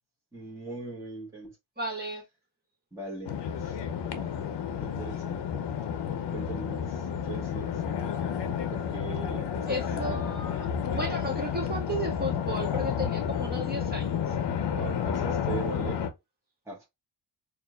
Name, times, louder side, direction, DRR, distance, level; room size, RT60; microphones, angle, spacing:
voice 1, 0.3-1.5 2.9-3.8 4.1-5.4 6.3-8.1 8.7-10.3 14.7-16.0 16.7-16.8, right 4 dB, 5° right, 1.3 m, -40 dB
voice 2, 1.8-2.2 9.6-14.3, equal, 20° right, 1.7 m, -34 dB
sound 1, 3.2-16.1, left 8 dB, 70° left, 0.7 m, -31 dB
4.2 x 2.6 x 2.3 m
cardioid pair, 80°, 44 cm